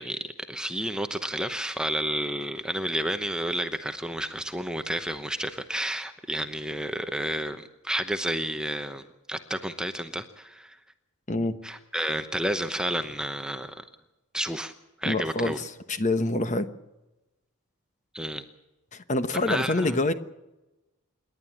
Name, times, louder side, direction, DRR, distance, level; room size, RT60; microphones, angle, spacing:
voice 1, 0.0-9.0 9.3-10.8 11.6-13.8 14.3-14.7 15.0-15.6 18.1-18.4 19.5-20.0, right 1 dB, 5° right, 8 dB, 0.9 m, -31 dB
voice 2, 15.0-16.7 18.9-20.1, left 2 dB, 35° left, 11 dB, 1.1 m, -26 dB
27.5 x 11.5 x 8.6 m, 1.0 s
head